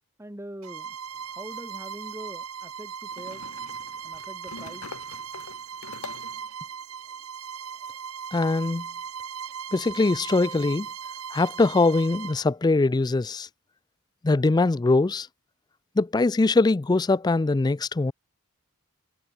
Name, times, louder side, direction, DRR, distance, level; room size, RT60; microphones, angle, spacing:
voice 1, 0.2-1.0 1.3-3.4 4.0-4.9, right 1 dB, 10° right, 1.5 m, -42 dB
Bowed string instrument, 0.6-12.4, right 7 dB, 80° right, 1.4 m, -38 dB
sound 1, 1.1-1.2 3.1-6.5, left 4 dB, 80° left, 1.3 m, -44 dB
voice 2, 8.3-8.9 9.7-10.9 11.3-13.5 14.2-15.3 16.0-18.1, left 3 dB, 20° left, 0.3 m, -22 dB
head